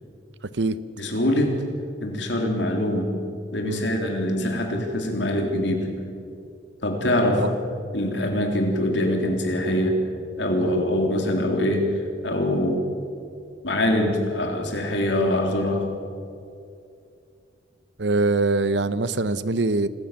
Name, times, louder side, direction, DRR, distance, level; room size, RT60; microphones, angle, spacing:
voice 1, 1.0-1.6 2.0-3.1 3.5-5.9 6.8-7.4 7.9-10.0 10.4-11.9 12.2-12.9 13.6-15.9, left 1 dB, 75° left, 2 dB, 3.6 m, -23 dB
voice 2, 18.0-19.9, right 3 dB, 75° right, 15 dB, 0.9 m, -23 dB
25.5 x 14.0 x 7.5 m, 2.4 s
head